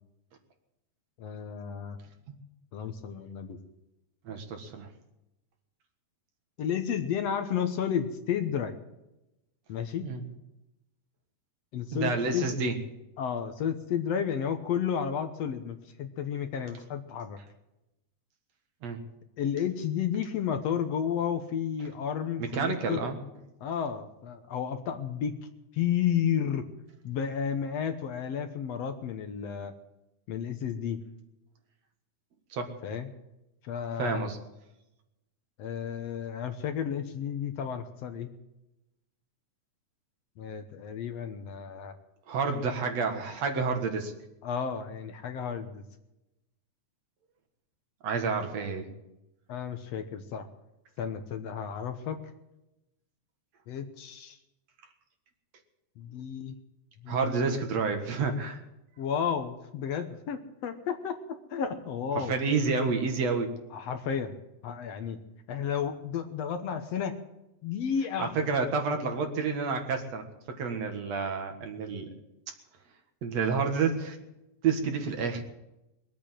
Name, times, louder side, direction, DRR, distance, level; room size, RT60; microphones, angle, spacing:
voice 1, 1.2-2.0 2.7-3.6 6.6-8.7 9.7-10.1 11.7-12.7 13.2-17.4 19.4-23.0 23.6-25.4 25.7-26.6 27.0-29.7 30.3-31.0 32.8-33.1 33.6-34.2 35.6-38.3 40.4-42.0 44.4-45.9 49.5-50.5 51.0-52.2 53.7-54.4 56.0-56.6 57.0-57.6 59.0-62.4 63.7-64.3 64.6-65.2 65.5-67.2 67.6-68.5, left 8 dB, 65° left, 7 dB, 2.1 m, -32 dB
voice 2, 4.3-4.9 10.0-10.2 11.9-12.7 18.8-19.0 22.4-23.2 32.5-32.7 34.0-34.4 42.3-44.1 48.0-48.9 57.1-58.6 62.2-63.5 68.2-70.3 70.6-72.1 73.2-74.2 74.6-75.4, right 4 dB, 65° right, 5 dB, 2.8 m, -29 dB
22.0 x 8.6 x 7.5 m, 0.93 s
omnidirectional pair, 3.4 m